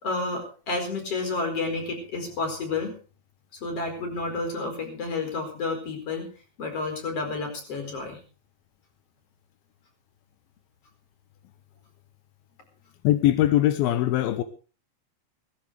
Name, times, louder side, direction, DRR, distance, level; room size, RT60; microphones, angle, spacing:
voice 1, 0.0-2.9 3.6-6.2 6.6-8.2, left 3 dB, 40° left, 4 dB, 5.5 m, -30 dB
voice 2, 13.0-14.4, left 13 dB, 85° left, 10 dB, 2.8 m, -21 dB
18.5 x 16.0 x 3.4 m, 0.36 s
omnidirectional pair, 4.1 m